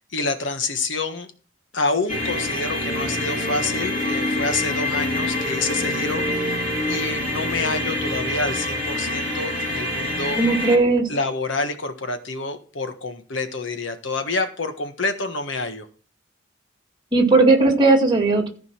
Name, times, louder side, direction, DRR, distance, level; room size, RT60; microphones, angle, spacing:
voice 1, 0.1-1.3 1.7-6.6 6.9-10.4 11.1-15.9, left 3 dB, 70° left, 7 dB, 1.4 m, -27 dB
sound 1, 2.1-10.8, left 1 dB, 40° left, 3.8 m, -26 dB
voice 2, 10.4-11.1 17.1-18.5, right 3 dB, 25° right, 1 dB, 2.1 m, -17 dB
14.5 x 5.2 x 6.0 m, 0.41 s
head